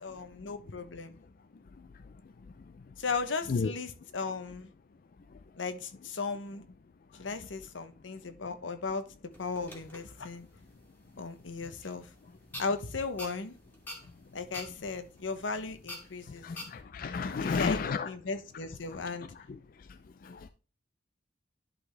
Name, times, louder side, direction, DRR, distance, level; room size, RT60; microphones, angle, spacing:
voice 1, 0.0-1.2 3.0-4.7 5.6-6.6 7.1-9.0 9.4-10.5 11.2-12.1 12.6-13.6 14.3-16.5 17.3-19.3, left 4 dB, 85° left, 0.9 m, -36 dB
sound 1, 9.3-16.8, left 1 dB, 10° left, 1.7 m, -49 dB
voice 2, 16.4-18.1 20.3-20.5, left 5 dB, 50° left, 0.4 m, -31 dB
11.0 x 4.0 x 3.3 m
head